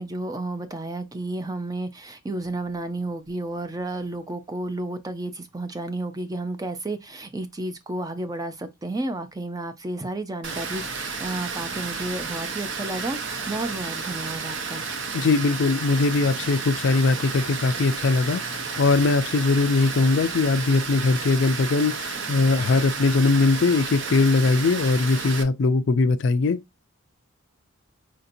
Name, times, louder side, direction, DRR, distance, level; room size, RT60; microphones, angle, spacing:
voice 1, 0.0-14.8, right 2 dB, 15° right, 0.4 m, -32 dB
Water, 10.4-25.4, right 5 dB, 55° right, 0.7 m, -32 dB
voice 2, 15.1-26.6, left 3 dB, 55° left, 0.3 m, -21 dB
5.0 x 2.7 x 2.6 m
head